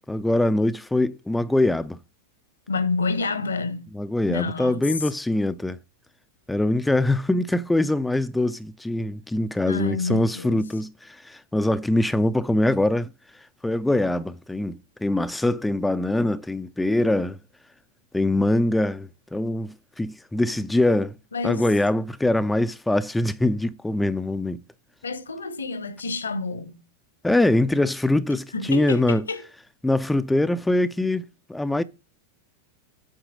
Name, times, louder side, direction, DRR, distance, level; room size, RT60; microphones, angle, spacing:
voice 1, 0.1-2.0 3.9-5.8 6.5-13.1 13.6-17.4 18.1-21.1 21.4-24.6 27.2-29.2 29.8-31.2 31.5-31.8, left 1 dB, 5° left, 0.5 m, -23 dB
voice 2, 2.7-3.9 4.3-4.9 9.7-10.6 21.3-21.6 25.0-26.8 28.5-29.4, left 3 dB, 70° left, 1.2 m, -28 dB
8.8 x 4.8 x 5.0 m
figure-of-eight pair, 90°, 0 cm